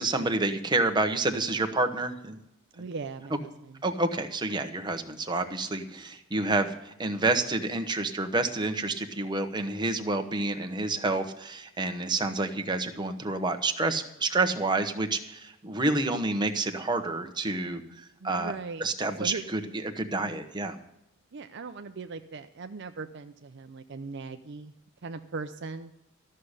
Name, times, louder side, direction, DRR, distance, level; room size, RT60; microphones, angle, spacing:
voice 1, 0.0-2.4 3.8-18.5 18.8-20.7, right 2 dB, 20° right, 5 dB, 1.1 m, -29 dB
voice 2, 2.8-3.8 17.9-18.9 19.2-19.5 21.3-24.7 25.0-25.9, right 4 dB, 55° right, 8 dB, 0.6 m, -39 dB
13.5 x 6.5 x 9.8 m, 0.84 s
head